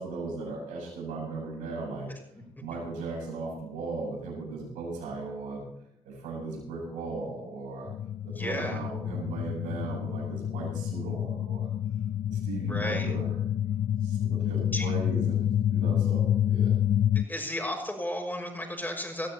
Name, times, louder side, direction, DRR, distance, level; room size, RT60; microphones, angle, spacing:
voice 1, 0.0-2.1 2.6-5.6 6.0-7.9 8.2-11.7 12.3-13.3 14.0-16.8, right 3 dB, 75° right, -2 dB, 6.8 m, -37 dB
sound 1, 7.9-17.2, left 10 dB, 50° left, 0.5 m, -28 dB
voice 2, 8.4-8.8 12.7-13.1 14.7-14.9 17.3-19.3, left 1 dB, 15° left, 2 dB, 6.1 m, -33 dB
19.5 x 13.5 x 3.0 m, 0.83 s
hypercardioid pair, 50°, 13 cm